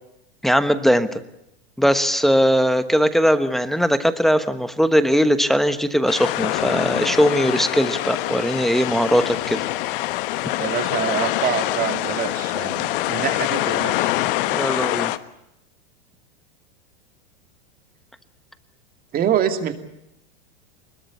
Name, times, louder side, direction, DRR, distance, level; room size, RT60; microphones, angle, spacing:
voice 1, 0.4-1.2 1.8-9.6 14.5-15.1, equal, ahead, 11 dB, 1.1 m, -19 dB
sound 1, 6.1-15.2, left 16 dB, 55° left, 1.4 m, -25 dB
voice 2, 10.6-14.1 19.1-19.7, right 9 dB, 30° right, 7 dB, 2.6 m, -25 dB
23.5 x 21.5 x 8.4 m, 0.83 s
supercardioid pair, 140°, 32 cm